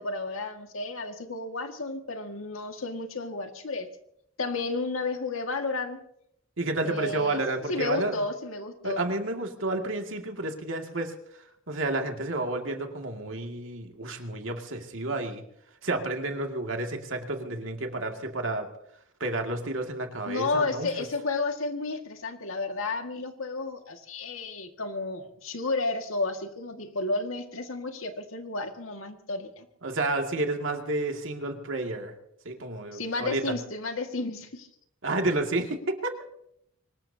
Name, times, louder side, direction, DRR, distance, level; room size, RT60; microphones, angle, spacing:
voice 1, 0.0-3.9 4.4-6.0 6.8-7.4 7.7-9.1 20.2-29.7 32.9-34.7, left 3 dB, 80° left, 5 dB, 2.0 m, -32 dB
voice 2, 6.6-8.2 8.8-11.1 11.7-15.4 15.8-18.7 19.2-20.9 29.8-32.1 32.5-33.5 35.0-36.1, right 2 dB, 65° right, 3 dB, 2.3 m, -30 dB
24.5 x 20.0 x 2.8 m, 0.75 s
head